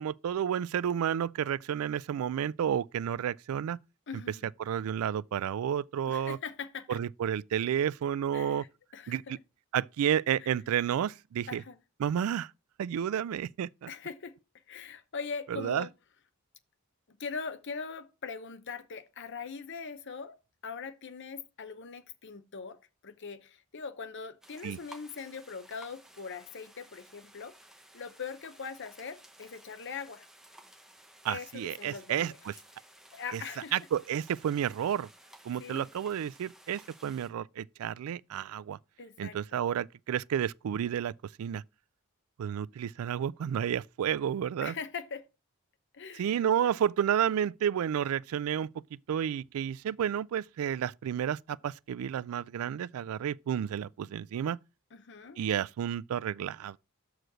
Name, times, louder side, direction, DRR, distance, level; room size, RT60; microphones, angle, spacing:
voice 1, 0.0-3.8 4.6-6.4 6.9-8.6 9.1-9.4 9.7-11.6 12.0-12.5 12.8-13.9 15.5-15.9 24.6-24.8 31.2-32.5 33.3-33.4 33.7-35.1 35.4-38.8 39.2-41.1 41.4-41.6 42.4-44.8 46.1-48.7 49.1-54.6 55.4-56.8, right 9 dB, 70° right, 0.3 m, -31 dB
voice 2, 4.1-4.5 6.1-7.0 8.3-9.4 10.4-10.5 11.5-11.8 13.9-14.4 14.7-15.9 17.2-20.4 20.6-22.8 23.0-27.6 27.9-30.3 31.3-32.4 33.1-33.8 35.6-35.9 39.0-39.4 44.6-45.3 45.9-46.4 54.9-55.4, left 5 dB, 55° left, 0.8 m, -41 dB
sound 1, 24.4-37.3, right 1 dB, ahead, 0.9 m, -56 dB
6.4 x 4.7 x 6.1 m
head